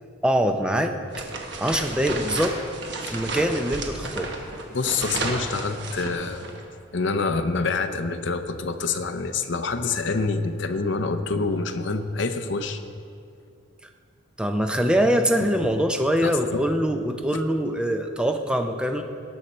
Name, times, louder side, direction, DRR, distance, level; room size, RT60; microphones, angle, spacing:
voice 1, 0.2-0.9 1.6-2.6 3.0-4.3 14.4-19.0, equal, 5° right, 5 dB, 0.5 m, -23 dB
sound 1, 1.1-6.6, right 3 dB, 55° right, 1.2 m, -33 dB
voice 2, 4.7-6.5 6.9-12.8 16.2-16.7 17.3-17.4, left 4 dB, 60° left, 9 dB, 0.6 m, -27 dB
17.5 x 6.3 x 4.3 m, 2.4 s
head